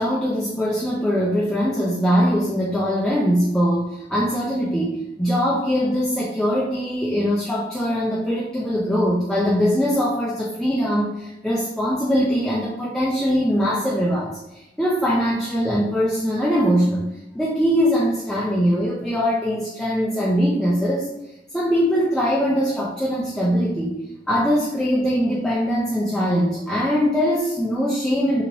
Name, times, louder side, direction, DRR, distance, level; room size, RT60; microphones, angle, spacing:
voice 1, 0.0-17.1 17.3-21.1 21.5-24.0 24.3-28.4, equal, 5° left, -6 dB, 0.4 m, -22 dB
2.9 x 2.9 x 2.6 m, 0.95 s
head